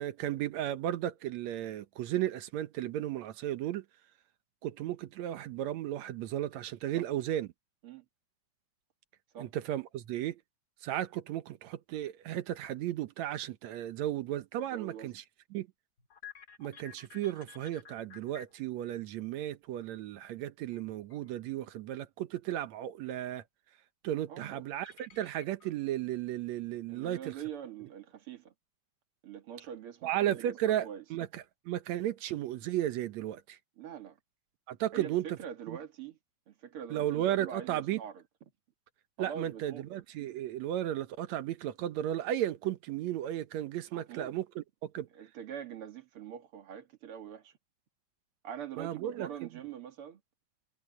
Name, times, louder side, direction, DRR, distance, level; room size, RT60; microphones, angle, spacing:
voice 1, 0.0-3.8 4.6-7.5 9.4-10.4 10.8-15.2 15.5-15.7 16.6-23.4 24.0-27.3 30.0-33.6 34.7-35.3 35.7-35.8 36.9-38.0 39.2-45.1 48.8-49.3, right 12 dB, 70° right, 2.1 m, -34 dB
voice 2, 14.7-15.1 24.3-24.6 26.9-28.5 29.2-31.0 33.8-34.2 34.9-36.2 36.5-38.5 39.2-39.9 43.9-44.4 45.1-47.6 48.4-50.2, right 9 dB, 50° right, 2.4 m, -44 dB
sound 1, 16.0-18.8 20.7-20.8 21.1-21.5 24.7-25.9 26.3-26.4 27.0-27.4, left 6 dB, 35° left, 2.7 m, -52 dB
omnidirectional pair, 3.4 m